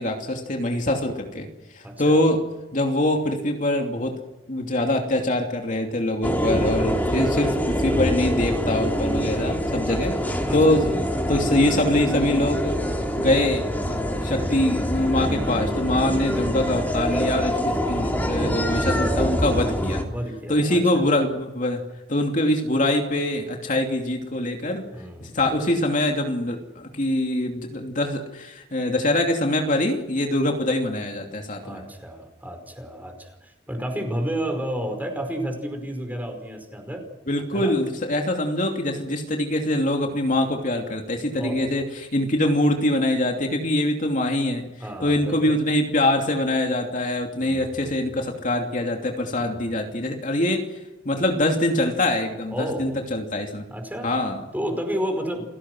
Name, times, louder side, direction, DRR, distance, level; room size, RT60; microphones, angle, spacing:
voice 1, 0.0-1.5 1.7-2.4 2.7-4.2 4.5-10.1 10.5-10.9 11.3-12.8 13.2-20.0 20.5-21.8 22.1-24.9 25.2-31.8 37.3-44.7 45.0-50.6 51.0-53.7 54.0-54.4, left 1 dB, 50° left, 2 dB, 2.8 m, -24 dB
voice 2, 1.8-2.2 9.9-10.2 10.5-10.8 20.1-21.0 24.9-25.4 31.6-37.0 37.5-37.7 41.3-41.7 44.8-45.6 47.4-47.9 49.4-49.7 52.5-53.0 53.7-54.1 54.5-55.4, equal, 10° right, 4 dB, 5.1 m, -31 dB
sound 1, 6.2-20.0, equal, 10° left, 3.3 m, -25 dB
29.0 x 17.5 x 6.3 m, 1.0 s
head